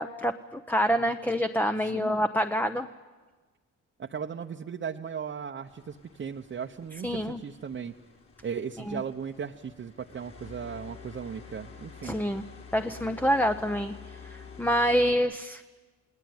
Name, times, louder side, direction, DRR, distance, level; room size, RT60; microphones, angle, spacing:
voice 1, 0.0-2.9 7.0-7.4 8.9-9.0 12.0-12.4 12.7-13.9 14.2-15.8, equal, 5° left, 8 dB, 0.8 m, -27 dB
voice 2, 1.8-2.2 4.0-7.9 8.4-12.2, right 7 dB, 40° right, 2 dB, 1.0 m, -37 dB
sound 1, 5.7-15.1, left 6 dB, 45° left, 5.4 m, -49 dB
28.5 x 19.0 x 9.4 m, 1.4 s
cardioid pair, 90°, 30 cm